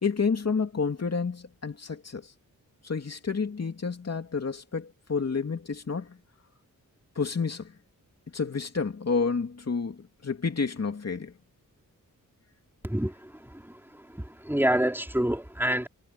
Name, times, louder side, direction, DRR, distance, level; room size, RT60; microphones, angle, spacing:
voice 1, 0.0-2.3 2.8-6.2 7.2-7.7 8.3-11.3, left 5 dB, 50° left, 2.9 m, -30 dB
voice 2, 14.2-15.9, right 1 dB, 5° right, 4.2 m, -26 dB
wide cardioid pair, 110°, 34 cm